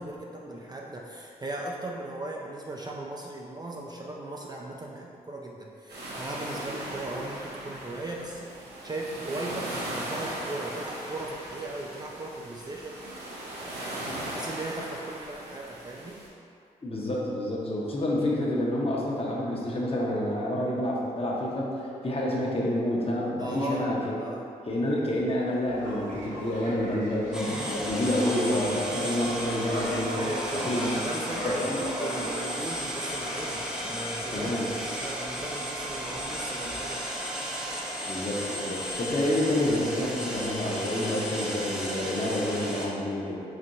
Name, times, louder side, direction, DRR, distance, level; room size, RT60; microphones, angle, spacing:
voice 1, 0.0-13.0 13.6-13.8 14.3-16.2 23.4-23.9 24.2-24.5 30.1-37.0, right 2 dB, 25° right, -2 dB, 0.4 m, -38 dB
sound 1, 5.9-16.3, right 1 dB, 75° right, 0.7 m, -38 dB
voice 2, 16.8-24.2 24.7-30.2 30.5-30.9 31.4-31.8 34.3-34.7 38.1-43.4, left 1 dB, 35° left, -4 dB, 0.9 m, -28 dB
sound 2, 25.7-37.0, equal, 50° right, 1.3 m, -40 dB
sound 3, 27.3-42.9, equal, 5° right, 0.7 m, -34 dB
4.3 x 2.6 x 2.6 m, 2.5 s
supercardioid pair, 45°, 17 cm